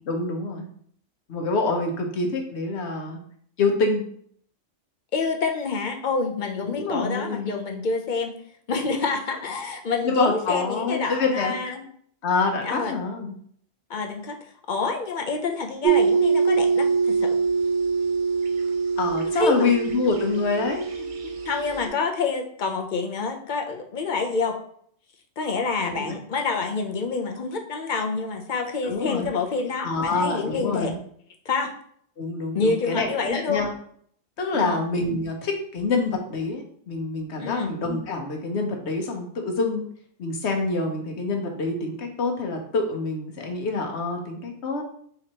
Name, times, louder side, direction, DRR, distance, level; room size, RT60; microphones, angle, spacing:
voice 1, 0.1-0.7 1.3-3.2 3.6-4.0 6.6-7.6 10.0-11.5 12.2-13.4 19.0-21.1 25.8-26.1 28.8-29.3 29.8-31.0 32.2-33.7 34.4-39.9 40.2-44.8, left 3 dB, 70° left, 3 dB, 1.1 m, -26 dB
voice 2, 5.1-8.3 8.7-11.8 12.6-13.0 13.9-14.3 14.7-17.4 19.3-19.7 21.5-24.5 25.4-30.9 31.5-31.7 32.5-33.7 34.5-34.8 37.4-37.7, left 4 dB, 50° left, 3 dB, 0.7 m, -27 dB
sound 1, 15.8-21.9, right 5 dB, 50° right, 0.7 m, -23 dB
4.4 x 3.9 x 2.9 m, 0.62 s
omnidirectional pair, 1.2 m